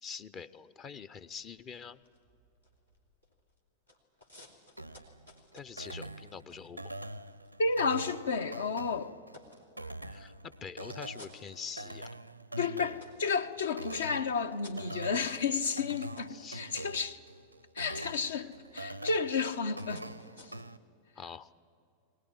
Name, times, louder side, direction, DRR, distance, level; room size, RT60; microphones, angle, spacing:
voice 1, 0.0-2.0 5.5-6.9 10.0-12.1 16.3-16.6 18.3-18.5 21.2-21.5, left 6 dB, 30° left, 0.7 m, -45 dB
sound 1, 1.4-3.6 3.9-8.6 9.0-10.3 10.8-12.2 12.6-20.6, left 1 dB, 85° left, 3.0 m, -60 dB
sound 2, 4.8-20.8, right 2 dB, 90° right, 0.6 m, -45 dB
voice 2, 7.6-9.2 12.6-17.2 17.7-20.1 20.4-20.5, left 4 dB, 65° left, 1.0 m, -32 dB
23.0 x 18.5 x 10.0 m
figure-of-eight pair, 90°, 0 cm